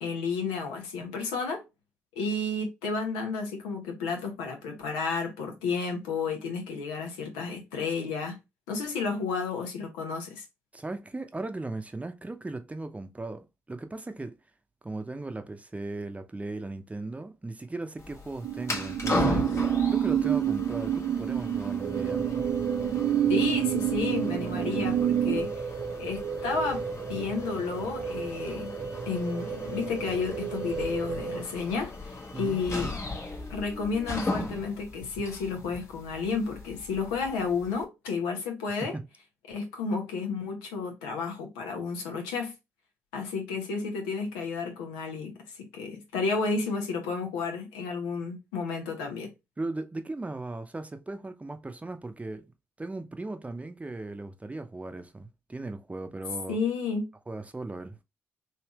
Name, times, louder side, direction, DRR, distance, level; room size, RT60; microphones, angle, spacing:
voice 1, 0.0-1.6 2.1-8.4 8.7-10.4 23.3-25.5 26.0-26.8 27.1-28.7 29.1-32.9 33.5-39.0 39.5-42.5 43.1-49.3 56.5-57.1, left 4 dB, 85° left, 0.9 m, -32 dB
voice 2, 10.7-14.4 14.8-22.2 32.3-32.6 38.9-39.0 49.6-52.5 52.8-56.6 57.3-58.0, right 2 dB, 20° right, 0.7 m, -37 dB
sound 1, 18.0-37.8, left 2 dB, 45° left, 1.2 m, -38 dB
sound 2, 18.4-25.4, right 10 dB, 75° right, 0.5 m, -27 dB
sound 3, 21.8-31.4, right 5 dB, 50° right, 0.9 m, -35 dB
3.3 x 2.8 x 3.0 m
hypercardioid pair, 45°, 7 cm